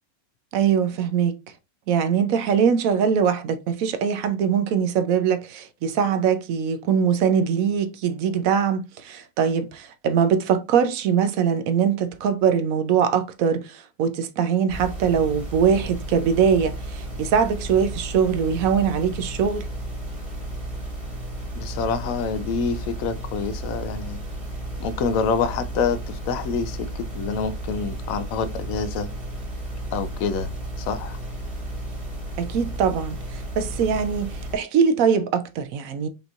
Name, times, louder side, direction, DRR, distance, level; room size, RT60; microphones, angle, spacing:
voice 1, 0.5-1.4 1.9-19.7 32.4-36.1, right 7 dB, 75° right, 1.0 m, -22 dB
sound 1, 14.7-34.6, right 1 dB, 40° right, 1.9 m, -33 dB
voice 2, 21.6-24.2 24.8-29.1 29.9-30.5 30.8-31.2, left 5 dB, 75° left, 1.0 m, -27 dB
5.2 x 2.9 x 2.4 m
omnidirectional pair, 1.5 m